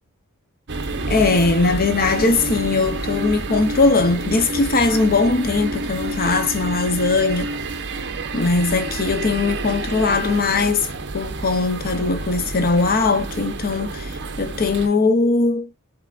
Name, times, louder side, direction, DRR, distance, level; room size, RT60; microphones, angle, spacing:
sound 1, 0.7-14.9, right 2 dB, 55° right, 0.9 m, -29 dB
voice 1, 1.1-7.5 8.3-10.9 11.1-15.7, left 3 dB, 45° left, 0.8 m, -20 dB
5.7 x 3.6 x 2.4 m
head